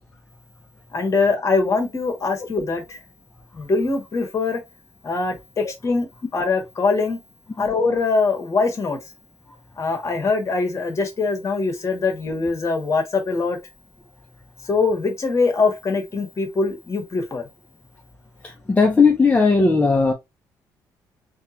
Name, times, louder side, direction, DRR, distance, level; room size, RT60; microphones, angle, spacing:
voice 1, 0.9-3.0 3.5-4.6 5.0-7.2 7.6-9.0 9.8-13.6 14.7-17.4, left 4 dB, 40° left, 1.7 m, -22 dB
voice 2, 18.4-20.1, left 4 dB, 20° left, 0.9 m, -17 dB
3.5 x 3.0 x 2.8 m
cardioid pair, 80°, 8 cm